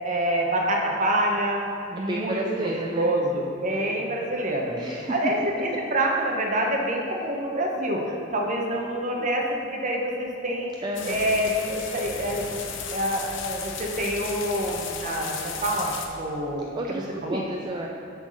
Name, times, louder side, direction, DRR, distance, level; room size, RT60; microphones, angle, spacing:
voice 1, 0.0-4.7 5.1-9.4 9.7-10.7 11.0-12.4 12.9-15.9 16.2-17.4, right 1 dB, 40° right, 0 dB, 0.9 m, -26 dB
voice 2, 2.0-3.1 4.8-5.2 9.1-9.3 10.8-11.2 16.7-17.9, right 1 dB, 20° right, 0 dB, 0.4 m, -31 dB
sound 1, 10.9-16.1, left 6 dB, 75° left, 0.7 m, -35 dB
7.1 x 4.0 x 6.4 m, 2.7 s
head